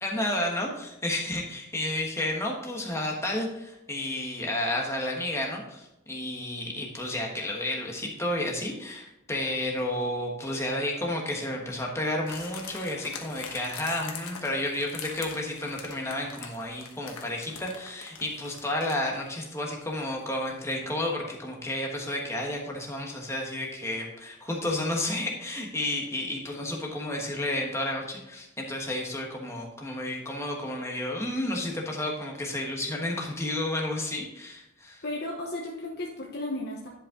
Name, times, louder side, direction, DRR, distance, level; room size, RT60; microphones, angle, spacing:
voice 1, 0.0-35.0, left 1 dB, 15° left, 0 dB, 1.3 m, -31 dB
sound 1, 12.3-20.9 21.1-21.2, left 6 dB, 90° left, 1.2 m, -43 dB
voice 2, 35.0-36.9, left 1 dB, 50° left, -2 dB, 1.0 m, -34 dB
10.5 x 5.4 x 3.8 m, 0.89 s
head